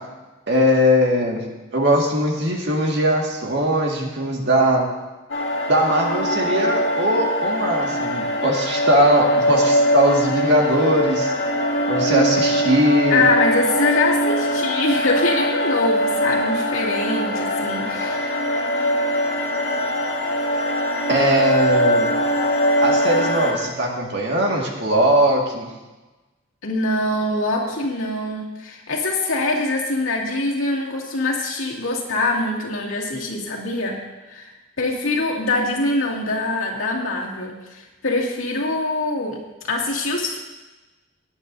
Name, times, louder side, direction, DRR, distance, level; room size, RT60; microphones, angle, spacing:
voice 1, 0.5-1.4 1.7-4.9 5.7-11.3 11.9-13.2 21.1-22.1 22.8-25.7, equal, 55° right, 0 dB, 1.9 m, -20 dB
sound 1, 5.3-23.5, equal, 65° left, 2.0 m, -22 dB
voice 2, 13.1-18.4 26.6-34.0 34.3-34.5 34.8-39.4 39.7-40.4, left 2 dB, 85° left, -3 dB, 2.4 m, -23 dB
17.5 x 10.0 x 2.7 m, 1.1 s
head